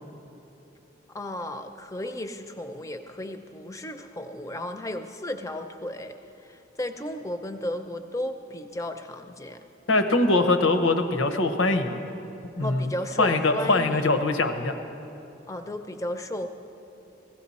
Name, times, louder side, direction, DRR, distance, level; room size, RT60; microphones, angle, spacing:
voice 1, 1.1-6.2 6.4-9.6 12.6-14.2 15.5-16.5, left 1 dB, 15° left, 7 dB, 0.5 m, -34 dB
voice 2, 9.9-12.0 12.6-14.7, left 2 dB, 90° left, 8 dB, 0.9 m, -23 dB
16.5 x 16.0 x 4.2 m, 2.9 s
head